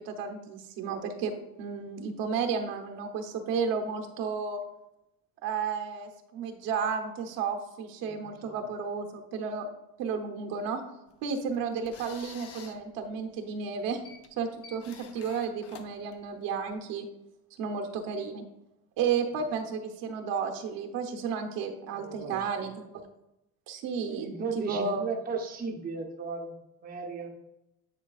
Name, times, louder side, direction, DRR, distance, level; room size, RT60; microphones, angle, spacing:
voice 1, 0.0-1.3 1.6-4.6 5.4-9.7 10.0-10.8 11.2-14.0 14.4-17.1 17.6-18.4 19.0-23.1 23.7-25.0, right 5 dB, 65° right, 4 dB, 1.0 m, -32 dB
voice 2, 8.0-8.6 21.9-22.5 24.1-26.6 26.8-27.3, right 4 dB, 25° right, 1 dB, 0.7 m, -36 dB
sound 1, 11.1-16.7, left 6 dB, 40° left, 0.7 m, -51 dB
10.0 x 4.4 x 2.4 m, 0.86 s
cardioid pair, 140°, 36 cm